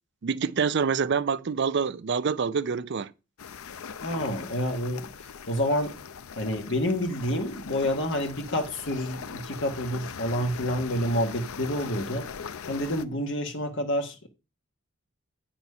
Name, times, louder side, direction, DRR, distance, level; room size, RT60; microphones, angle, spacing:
voice 1, 0.2-3.1, right 6 dB, 50° right, 0.4 m, -26 dB
sound 1, 3.4-13.1, left 6 dB, 75° left, 0.6 m, -41 dB
voice 2, 4.0-5.9 6.4-12.2 12.7-14.3, left 1 dB, 55° left, 1.2 m, -28 dB
9.5 x 4.3 x 5.4 m
head